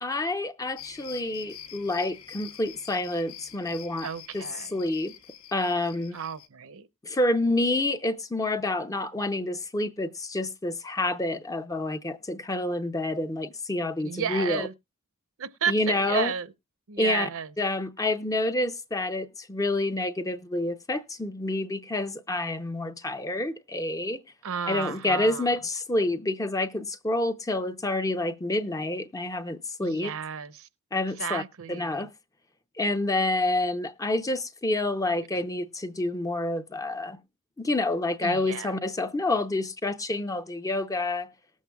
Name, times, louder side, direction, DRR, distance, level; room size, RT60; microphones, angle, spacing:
voice 1, 0.0-4.1 4.3-4.4 4.7-5.1 5.5-6.2 7.0-14.7 15.7-16.3 17.0-17.3 17.6-24.2 24.7-30.1 30.9-31.4 31.7-32.1 32.8-37.2 37.6-41.3, left 2 dB, 15° left, 0.6 m, -28 dB
sound 1, 0.8-6.5, left 10 dB, 65° left, 0.9 m, -46 dB
voice 2, 4.0-4.7 6.1-6.9 14.0-14.7 15.4-16.5 16.9-17.5 24.4-25.5 29.8-30.7 31.2-32.1 38.2-38.7, right 7 dB, 65° right, 0.7 m, -32 dB
19.5 x 7.3 x 2.3 m
head